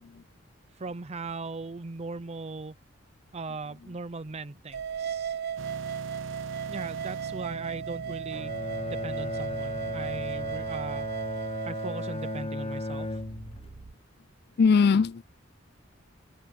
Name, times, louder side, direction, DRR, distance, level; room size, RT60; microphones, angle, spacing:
voice 1, 0.7-2.7 3.3-5.4 6.7-8.5 8.9-11.1 11.7-13.2, right 3 dB, 35° right, 0.6 m, -38 dB
sound 1, 4.7-12.4, right 8 dB, 55° right, 0.9 m, -36 dB
sound 2, 5.6-13.9, right 2 dB, 85° right, 1.0 m, -45 dB
Bowed string instrument, 8.3-13.8, left 2 dB, 30° left, 1.3 m, -35 dB
voice 2, 14.6-15.2, left 5 dB, 55° left, 0.4 m, -21 dB
head